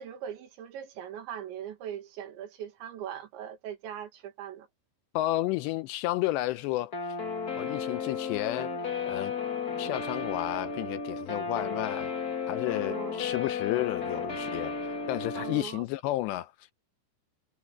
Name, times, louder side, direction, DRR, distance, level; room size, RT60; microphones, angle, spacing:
voice 1, 0.0-4.7 12.7-13.2 15.4-15.9, right 9 dB, 75° right, 4.3 m, -40 dB
voice 2, 5.1-6.9 7.6-8.7 9.1-9.3 9.8-12.1 12.5-14.7 15.1-16.5, left 16 dB, 80° left, 2.7 m, -31 dB
Guitar, 6.9-15.6, left 5 dB, 50° left, 1.0 m, -33 dB
omnidirectional pair, 5.3 m